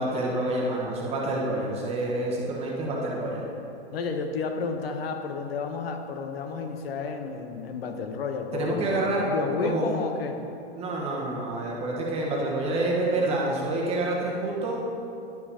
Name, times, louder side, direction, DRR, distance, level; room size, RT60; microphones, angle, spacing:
voice 1, 0.0-3.5 8.5-9.2 9.6-10.0 10.8-14.8, right 2 dB, 20° right, -3 dB, 1.2 m, -28 dB
voice 2, 3.9-10.4, left 4 dB, 70° left, 5 dB, 0.8 m, -31 dB
10.5 x 4.9 x 4.2 m, 2.7 s
hypercardioid pair, 145°, 31 cm